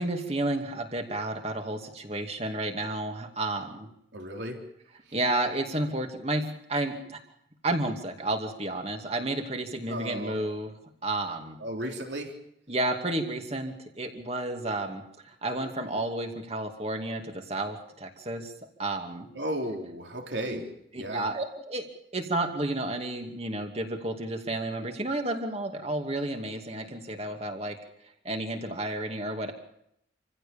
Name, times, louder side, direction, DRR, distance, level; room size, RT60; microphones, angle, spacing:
voice 1, 0.0-3.9 5.1-7.2 7.6-10.7 11.0-11.6 12.7-18.5 18.8-19.3 20.4-20.6 20.9-21.9 22.1-27.8 28.2-29.5, right 2 dB, 30° right, 5 dB, 2.5 m, -31 dB
voice 2, 4.1-4.6 9.9-10.4 11.6-12.4 19.4-20.7 21.0-21.3, right 1 dB, 65° right, 2 dB, 3.7 m, -34 dB
27.5 x 16.0 x 7.2 m, 0.75 s
head